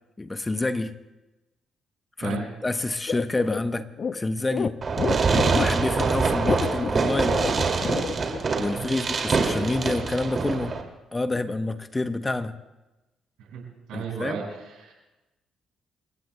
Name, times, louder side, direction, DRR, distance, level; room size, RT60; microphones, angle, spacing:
voice 1, 0.2-0.9 2.2-4.8 5.5-7.4 8.6-10.8 11.1-12.5 13.9-14.4, left 2 dB, 20° left, 0.8 m, -28 dB
sound 1, 3.1-8.4, left 6 dB, 50° left, 0.6 m, -29 dB
Fireworks, 4.8-10.8, right 4 dB, 45° right, 2.3 m, -25 dB
voice 2, 13.9-14.4 14.8-14.9, right 7 dB, 80° right, 5.3 m, -34 dB
29.0 x 15.5 x 2.2 m
supercardioid pair, 60°, 0 cm